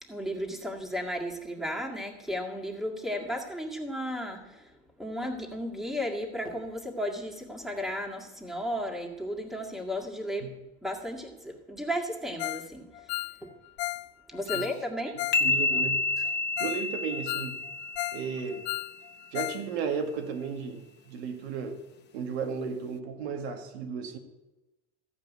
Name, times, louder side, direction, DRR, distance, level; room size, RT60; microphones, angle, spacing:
voice 1, 0.0-13.5 14.3-15.2, equal, ahead, 1.9 m, -34 dB
Ringtone, 12.4-12.7 12.9-15.5 15.7-15.8 16.3-16.4 16.6-16.8 17.1-18.3 18.5-19.6 19.9-20.0 20.4-20.5, left 18 dB, 85° left, 0.5 m, -35 dB
sound 1, 15.3-18.9, left 3 dB, 35° left, 0.8 m, -29 dB
voice 2, 15.4-16.0 16.3-16.4 16.6-17.6 18.1-18.6 19.3-21.8 22.1-24.2, right 6 dB, 90° right, 1.8 m, -34 dB
14.5 x 5.2 x 8.2 m
supercardioid pair, 120°, 32 cm